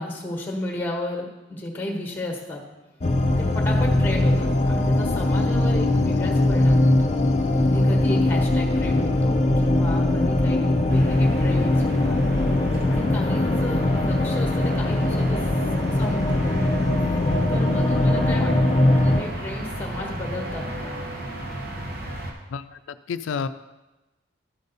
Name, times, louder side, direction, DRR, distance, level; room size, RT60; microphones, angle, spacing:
voice 1, 0.0-2.6 3.4-6.9 7.6-12.2 12.8-15.4 15.9-16.4 17.5-21.1, left 1 dB, 10° left, 1 dB, 1.3 m, -33 dB
sound 1, 3.0-19.2, left 1 dB, 35° left, 0.6 m, -21 dB
sound 2, 10.9-22.3, right 1 dB, 50° right, 1.1 m, -34 dB
voice 2, 23.1-23.5, left 6 dB, 75° left, 11 dB, 0.3 m, -30 dB
12.0 x 5.3 x 4.0 m, 1.1 s
head